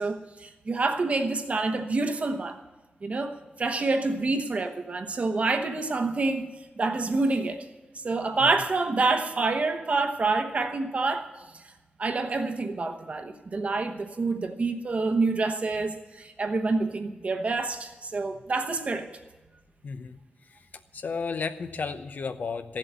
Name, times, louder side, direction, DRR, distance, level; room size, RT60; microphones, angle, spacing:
voice 1, 0.0-2.6 3.0-6.5 6.8-7.6 8.0-11.3 12.0-19.1, right 3 dB, 40° right, 6 dB, 1.1 m, -27 dB
voice 2, 19.8-20.2 20.5-20.6 20.9-22.8, left 5 dB, 55° left, 10 dB, 0.8 m, -33 dB
15.5 x 7.7 x 8.1 m, 1.2 s
wide cardioid pair, 175°, 3 cm